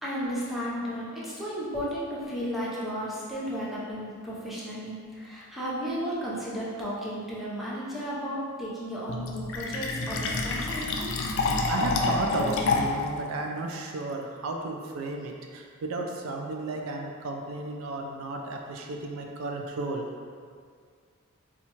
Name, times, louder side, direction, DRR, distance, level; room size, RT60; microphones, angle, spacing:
voice 1, 0.0-11.1, equal, ahead, -8 dB, 0.6 m, -34 dB
Fill (with liquid), 9.1-13.1, left 3 dB, 65° left, 0.4 m, -28 dB
voice 2, 11.2-20.1, right 2 dB, 70° right, 2 dB, 0.3 m, -33 dB
4.2 x 2.4 x 2.9 m, 2.1 s
head